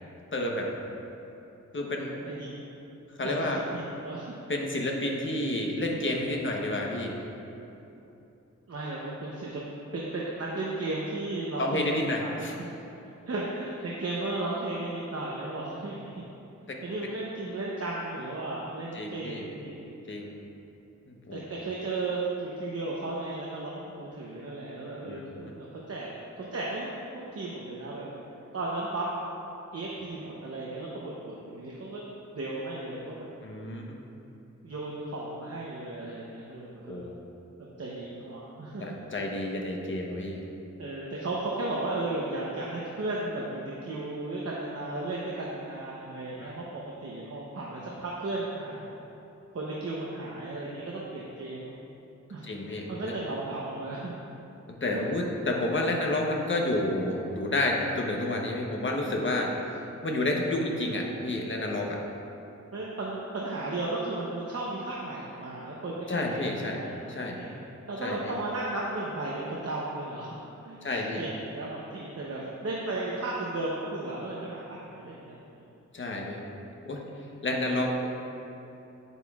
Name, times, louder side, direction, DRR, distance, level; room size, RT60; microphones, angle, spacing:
voice 1, 0.3-0.7 1.7-2.2 3.2-3.6 4.5-7.1 11.6-12.5 16.7-16.8 18.9-19.4 20.1-20.3 21.1-21.4 25.1-25.2 33.4-34.0 36.9-37.1 38.8-40.4 46.4-46.5 52.4-53.1 54.8-59.5 60.0-62.0 66.1-66.8 67.1-67.4 68.0-68.2 70.8-71.2 75.9-76.4 76.9-77.0 77.4-78.1, left 1 dB, 40° left, 0 dB, 0.9 m, -30 dB
voice 2, 2.0-2.8 3.2-4.4 8.7-9.6 9.9-12.7 13.3-16.1 16.6-19.8 21.3-26.1 26.4-28.1 28.5-29.0 29.7-32.0 32.3-33.3 34.6-37.1 37.6-38.9 40.8-48.9 49.5-51.8 52.3-54.1 54.9-55.0 62.7-67.5 67.9-70.4 70.6-75.5, right 2 dB, 55° right, -4 dB, 0.8 m, -35 dB
9.2 x 8.1 x 2.4 m, 3.0 s
wide cardioid pair, 120°, 30 cm